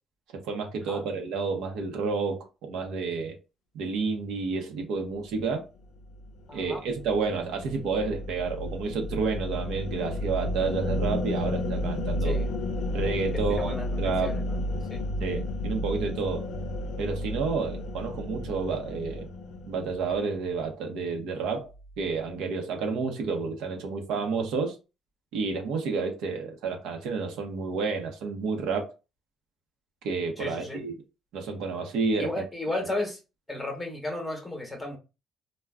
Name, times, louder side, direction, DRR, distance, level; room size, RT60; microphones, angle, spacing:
voice 1, 0.3-3.4 3.7-5.6 6.5-12.4 12.9-14.4 15.2-16.5 17.0-19.3 19.7-21.7 22.0-24.7 25.3-28.9 30.0-30.9 31.3-32.3, right 4 dB, 80° right, 0.8 m, -30 dB
sound 1, 6.0-20.5, left 1 dB, 90° left, 0.4 m, -32 dB
voice 2, 6.5-6.8 12.2-12.5 13.3-14.6 14.9-15.0 30.4-30.8 32.2-33.2 33.5-35.0, left 2 dB, 5° left, 0.9 m, -34 dB
3.5 x 2.2 x 2.2 m
cardioid pair, 150°, 0 cm